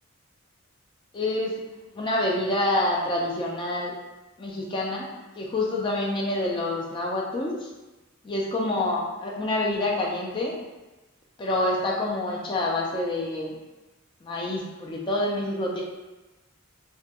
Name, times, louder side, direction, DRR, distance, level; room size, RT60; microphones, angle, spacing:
voice 1, 1.1-1.6 1.9-3.9 4.4-7.7 8.2-10.6 11.4-13.6 14.2-15.8, left 1 dB, 20° left, -2 dB, 0.3 m, -27 dB
2.2 x 2.2 x 2.8 m, 1.1 s
head